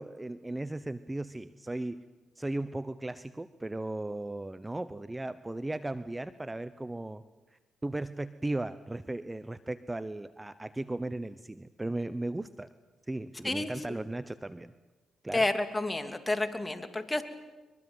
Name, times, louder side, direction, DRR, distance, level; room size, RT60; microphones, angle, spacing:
voice 1, 0.0-2.0 2.4-7.2 7.8-12.7 13.1-14.7 15.2-15.5, right 2 dB, 15° right, 14 dB, 0.9 m, -36 dB
voice 2, 15.3-17.2, left 2 dB, 20° left, 7 dB, 2.8 m, -30 dB
23.0 x 22.5 x 8.1 m, 1.2 s
supercardioid pair, 60°, 0 cm